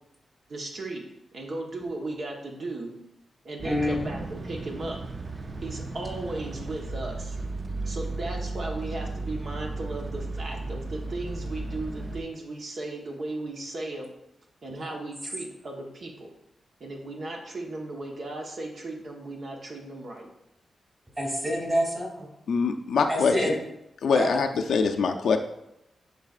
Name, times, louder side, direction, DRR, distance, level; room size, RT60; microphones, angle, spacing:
voice 1, 0.5-1.0 1.3-2.9 3.4-5.0 5.6-7.4 7.9-14.1 14.6-16.3 16.8-20.3, right 2 dB, 60° right, 0 dB, 1.1 m, -36 dB
voice 2, 3.6-4.2 21.2-22.3 23.1-23.6 24.1-24.3, equal, 20° right, -1 dB, 2.4 m, -27 dB
sound 1, 3.6-12.2, right 3 dB, 40° right, 0.6 m, -35 dB
voice 3, 22.5-23.3 24.0-25.4, left 5 dB, 75° left, 5 dB, 0.5 m, -23 dB
11.0 x 4.1 x 2.4 m, 0.86 s
cardioid pair, 75°, 0 cm